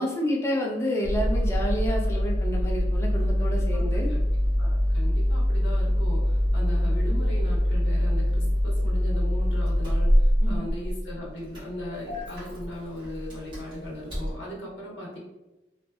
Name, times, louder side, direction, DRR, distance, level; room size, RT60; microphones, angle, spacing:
voice 1, 0.0-4.1 10.4-10.7, equal, 15° left, -1 dB, 0.3 m, -29 dB
Engine starting, 1.0-14.3, equal, 25° right, 1.0 m, -24 dB
voice 2, 3.5-4.3 4.6-15.2, left 1 dB, 70° left, -4 dB, 0.7 m, -38 dB
2.6 x 2.1 x 2.3 m, 1.0 s
head